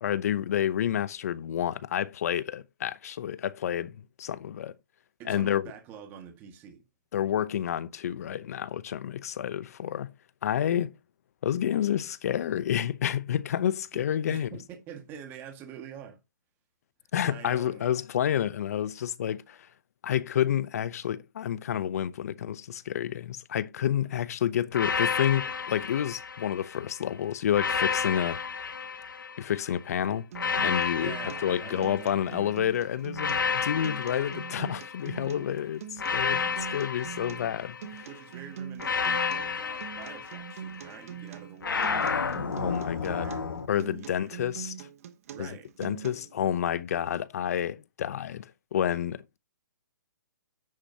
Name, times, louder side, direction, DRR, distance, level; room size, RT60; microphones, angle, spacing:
voice 1, 0.0-4.7 5.3-5.7 7.1-10.1 10.4-10.9 11.4-14.5 17.1-19.7 20.0-28.4 29.4-30.3 30.6-31.1 31.4-38.1 42.6-43.3 43.7-44.9 45.4-45.5 45.8-49.4, left 10 dB, 50° left, 0.8 m, -29 dB
voice 2, 5.2-6.8 13.9-14.0 14.3-16.2 17.2-17.9 31.0-32.4 37.0-37.1 38.1-44.3 45.3-45.7, right 8 dB, 20° right, 1.9 m, -46 dB
sound 1, 24.7-26.9 27.5-29.7 30.3-32.5 33.1-35.3 36.0-38.1 38.8-41.0 41.6-43.7, left 6 dB, 85° left, 1.8 m, -31 dB
Acoustic guitar, 30.3-46.3, right 9 dB, 45° right, 1.3 m, -43 dB
10.5 x 8.7 x 2.9 m
hypercardioid pair, 155°, 11 cm